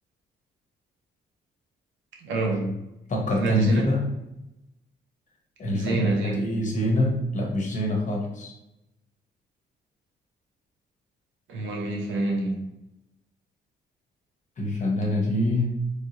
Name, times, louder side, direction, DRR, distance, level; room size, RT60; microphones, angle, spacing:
voice 1, 2.2-2.7 3.4-3.9 5.7-6.5 11.5-12.6, right 2 dB, 75° right, 0 dB, 0.9 m, -27 dB
voice 2, 3.1-4.1 5.6-8.5 14.6-15.8, left 1 dB, 40° left, 0 dB, 1.0 m, -25 dB
3.2 x 2.7 x 2.9 m, 0.92 s
cardioid pair, 90°, 20 cm